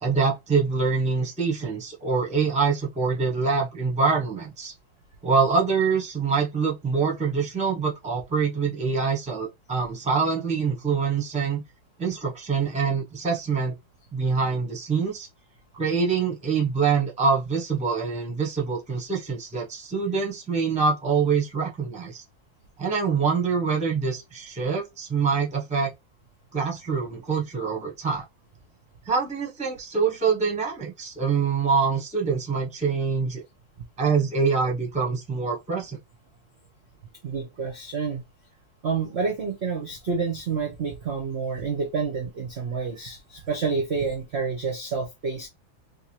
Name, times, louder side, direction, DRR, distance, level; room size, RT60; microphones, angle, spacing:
voice 1, 0.0-4.7 5.2-11.6 12.0-13.7 14.1-15.3 15.7-22.2 22.8-25.9 26.5-28.2 29.1-33.4 34.0-36.0, right 5 dB, 5° right, 0.7 m, -25 dB
voice 2, 37.2-38.2 38.8-45.5, right 5 dB, 55° right, 0.7 m, -28 dB
3.5 x 2.9 x 3.0 m
omnidirectional pair, 2.2 m